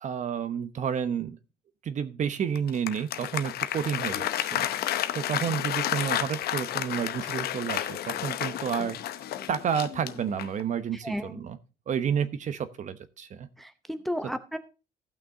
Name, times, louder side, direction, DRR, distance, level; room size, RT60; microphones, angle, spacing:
voice 1, 0.0-1.4 1.8-4.7 5.1-9.0 9.5-11.6 11.9-13.5, right 8 dB, 45° right, 12 dB, 1.0 m, -30 dB
Applause, 2.5-10.7, left 12 dB, 65° left, 0.8 m, -31 dB
voice 2, 10.9-11.4 13.6-14.6, equal, ahead, 11 dB, 0.7 m, -33 dB
15.5 x 5.9 x 3.8 m, 0.31 s
cardioid pair, 110°, 17 cm